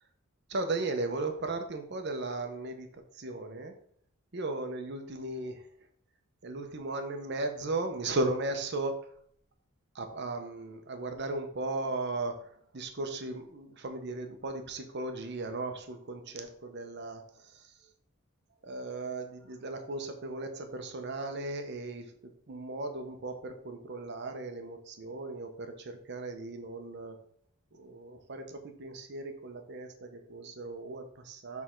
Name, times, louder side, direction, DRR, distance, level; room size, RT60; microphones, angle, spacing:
voice 1, 0.5-3.7 4.3-5.6 6.4-9.0 9.9-12.4 12.7-17.6 18.7-27.2 27.7-31.6, right 2 dB, 55° right, 6 dB, 0.8 m, -36 dB
6.6 x 3.5 x 4.4 m, 0.63 s
head